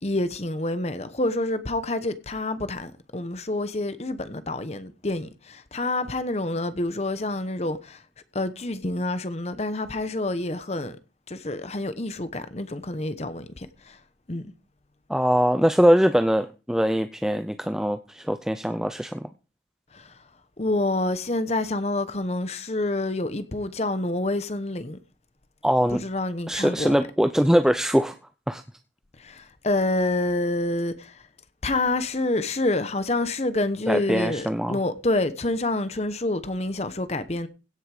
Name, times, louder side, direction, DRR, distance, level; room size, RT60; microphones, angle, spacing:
voice 1, 0.0-8.0 8.3-11.0 11.3-14.0 14.3-14.5 19.9-20.1 20.6-25.0 25.9-26.9 29.2-31.2 31.6-37.5, left 2 dB, 35° left, 0.9 m, -27 dB
voice 2, 15.1-19.3 25.6-26.0 26.5-28.2 28.5-28.6 33.9-34.8, equal, 5° right, 0.5 m, -22 dB
16.5 x 6.5 x 4.9 m
head